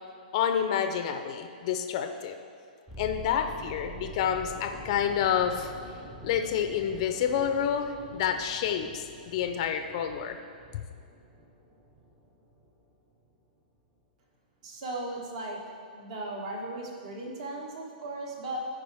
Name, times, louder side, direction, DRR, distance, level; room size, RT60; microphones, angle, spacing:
voice 1, 0.3-2.4 3.0-5.7 6.2-10.4 10.7-10.8, left 8 dB, 35° left, 6 dB, 0.5 m, -29 dB
sound 1, 2.9-12.9 13.1-13.3, right 1 dB, 5° right, 0.7 m, -46 dB
voice 2, 14.6-15.6 15.9-18.7, right 2 dB, 45° right, 0 dB, 1.5 m, -37 dB
13.5 x 4.9 x 3.5 m, 2.2 s
hypercardioid pair, 165°, 5 cm